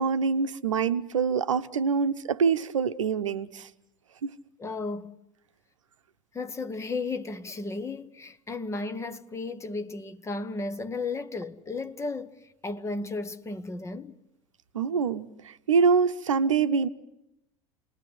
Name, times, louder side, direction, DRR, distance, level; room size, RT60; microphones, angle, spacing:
voice 1, 0.0-3.7 4.2-4.3 14.7-16.9, right 5 dB, 70° right, 0.9 m, -25 dB
voice 2, 4.6-5.1 6.3-14.2, left 3 dB, 15° left, 1.1 m, -34 dB
28.0 x 20.0 x 9.8 m
figure-of-eight pair, 75°, 17 cm